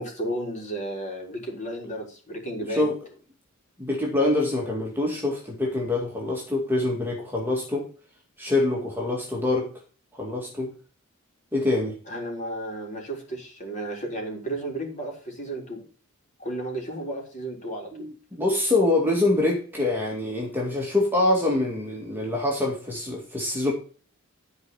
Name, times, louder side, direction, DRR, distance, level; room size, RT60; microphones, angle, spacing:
voice 1, 0.0-2.9 12.1-15.8 16.4-18.1, right 1 dB, 35° left, 0 dB, 3.9 m, -33 dB
voice 2, 3.8-7.9 8.4-9.7 10.1-10.7 11.5-11.9 17.9-23.7, left 2 dB, 10° right, -1 dB, 2.1 m, -25 dB
13.0 x 4.9 x 5.6 m, 0.40 s
head